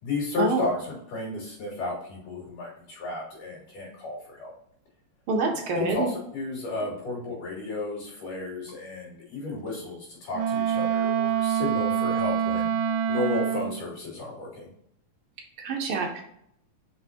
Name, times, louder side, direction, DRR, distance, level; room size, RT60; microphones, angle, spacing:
voice 1, 0.0-4.5 5.7-12.7 13.1-14.7, left 3 dB, 80° left, -4 dB, 4.3 m, -33 dB
voice 2, 5.3-6.1 15.6-16.2, right 4 dB, 65° right, 2 dB, 1.3 m, -26 dB
Wind instrument woodwind instrument, 10.3-13.8, right 8 dB, 85° right, 2.1 m, -26 dB
6.6 x 5.7 x 2.9 m, 0.71 s
omnidirectional pair, 3.7 m